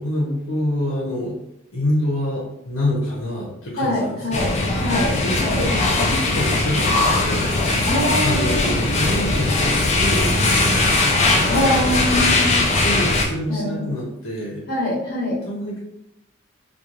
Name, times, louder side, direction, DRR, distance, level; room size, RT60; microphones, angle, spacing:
voice 1, 0.0-1.4 1.7-7.5 8.2-11.2 12.5-14.6 15.5-15.8, left 1 dB, 85° left, -4 dB, 0.7 m, -27 dB
voice 2, 3.8-5.6 7.8-8.7 11.5-12.6 13.5-13.9 14.7-15.4, left 1 dB, 50° left, -8 dB, 1.0 m, -24 dB
sound 1, 4.3-13.3, left 2 dB, 30° left, 0.3 m, -19 dB
2.9 x 2.3 x 2.4 m, 0.79 s
head